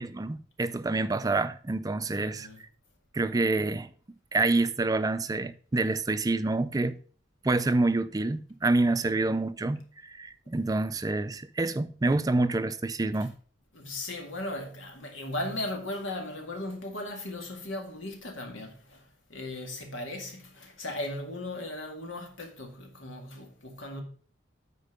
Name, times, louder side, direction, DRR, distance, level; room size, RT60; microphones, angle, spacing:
voice 1, 0.0-2.5 3.1-3.9 4.3-7.0 7.4-13.4, right 2 dB, 20° right, 0.4 m, -27 dB
voice 2, 2.1-2.6 13.7-24.0, left 1 dB, 90° left, 2.0 m, -37 dB
9.0 x 4.5 x 5.2 m
head